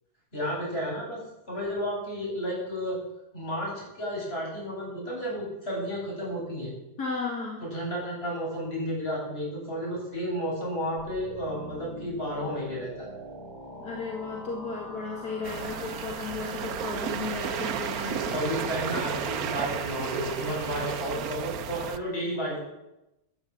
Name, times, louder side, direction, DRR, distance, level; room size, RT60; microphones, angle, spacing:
voice 1, 0.3-1.2 1.5-3.0 3.3-6.7 7.6-13.1 18.3-22.6, equal, 35° left, -4 dB, 8.4 m, -32 dB
voice 2, 7.0-7.6 13.8-18.4, left 4 dB, 70° left, -2 dB, 2.7 m, -34 dB
sound 1, 11.0-21.0, equal, 85° left, 6.9 m, -43 dB
sound 2, 15.4-22.0, right 9 dB, 65° right, 1.2 m, -33 dB
14.0 x 12.0 x 7.7 m, 0.94 s
omnidirectional pair, 1.7 m